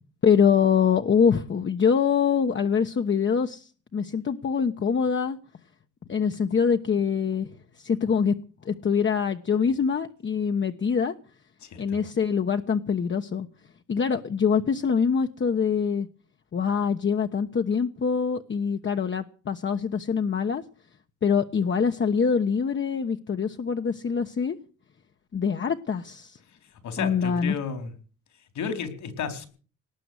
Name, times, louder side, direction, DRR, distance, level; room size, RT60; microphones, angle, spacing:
voice 1, 0.2-5.4 6.1-7.5 7.8-8.3 8.6-11.1 11.8-13.5 13.9-16.1 16.5-20.6 21.2-24.6 25.3-26.4 27.0-27.6, left 6 dB, 40° left, 6 dB, 1.1 m, -24 dB
voice 2, 11.6-12.0 26.7-27.9 28.5-29.5, left 6 dB, 70° left, 9 dB, 4.2 m, -33 dB
19.0 x 7.8 x 9.6 m, 0.40 s
cardioid pair, 90°, 30 cm